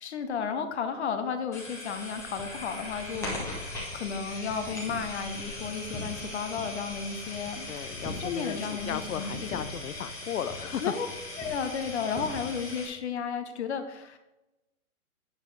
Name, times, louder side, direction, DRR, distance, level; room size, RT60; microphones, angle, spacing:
voice 1, 0.0-7.7 8.2-9.6 10.8-11.1 11.4-14.2, left 6 dB, 50° left, 8 dB, 1.1 m, -33 dB
sound 1, 1.5-12.9, left 2 dB, 5° left, 1.1 m, -39 dB
voice 2, 7.7-10.9, left 9 dB, 65° left, 13 dB, 0.7 m, -35 dB
8.7 x 7.0 x 3.3 m, 0.97 s
hypercardioid pair, 155°, 44 cm